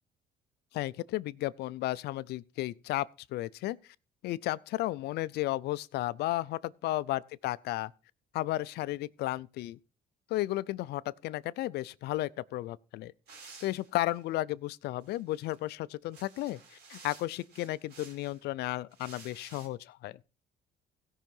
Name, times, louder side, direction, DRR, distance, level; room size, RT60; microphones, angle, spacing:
voice 1, 0.7-3.8 4.2-7.9 8.3-9.8 10.3-13.1 13.6-20.2, left 16 dB, 75° left, 0.5 m, -34 dB
sound 1, 13.3-14.2 15.0-15.5 16.0-18.4 18.9-19.7, right 4 dB, 70° right, 4.2 m, -53 dB
16.5 x 5.7 x 5.4 m
cardioid pair, 110°, 17 cm